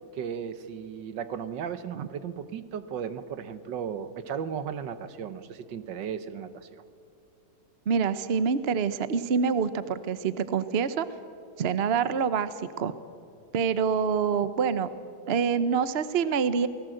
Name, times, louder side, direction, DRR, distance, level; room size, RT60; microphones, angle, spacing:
voice 1, 0.1-6.8, right 7 dB, 70° right, 12 dB, 1.6 m, -35 dB
voice 2, 7.9-11.1 11.6-12.9 13.5-14.9 15.3-16.7, right 6 dB, 50° right, 13 dB, 0.8 m, -26 dB
28.5 x 18.5 x 7.8 m, 2.4 s
omnidirectional pair, 2.0 m